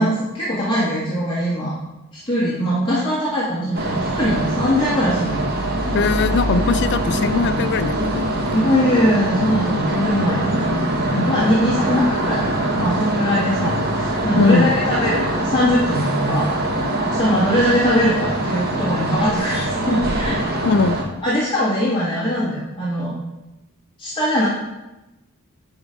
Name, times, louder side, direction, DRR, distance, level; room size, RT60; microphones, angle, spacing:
voice 1, 0.0-1.7 2.1-5.5 8.5-10.7 11.3-16.5 17.1-20.4 21.2-23.1 24.0-24.5, equal, 20° left, -8 dB, 1.6 m, -21 dB
sound 1, 3.7-21.0, right 1 dB, 45° right, 1.3 m, -23 dB
voice 2, 5.9-8.6 11.1-11.9 14.4-14.7 20.6-21.0, left 4 dB, 50° left, 14 dB, 0.4 m, -21 dB
10.0 x 5.0 x 5.2 m, 1.0 s
head